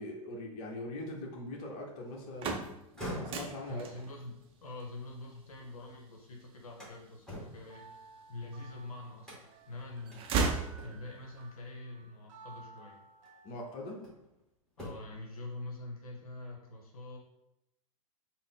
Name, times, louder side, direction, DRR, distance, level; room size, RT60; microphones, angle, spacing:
voice 1, 0.0-2.7 2.9-3.9 13.4-14.1, left 1 dB, 40° left, 0 dB, 0.9 m, -42 dB
sound 1, 2.1-8.1 8.6-9.4 9.7-11.3, right 4 dB, 30° right, 0.5 m, -37 dB
sound 2, 2.9-5.9 6.3-8.7 9.2-9.7 10.1-10.2 10.8-11.3 12.5-12.6 13.2-14.4 14.7-15.3, equal, 5° left, 1.4 m, -47 dB
voice 2, 3.7-8.0 8.3-13.0 14.8-17.2, left 2 dB, 80° left, 0 dB, 0.7 m, -45 dB
sound 3, 7.6-13.8, right 3 dB, 60° right, 0.8 m, -56 dB
3.7 x 2.1 x 3.7 m, 0.85 s
hypercardioid pair, 105°, 18 cm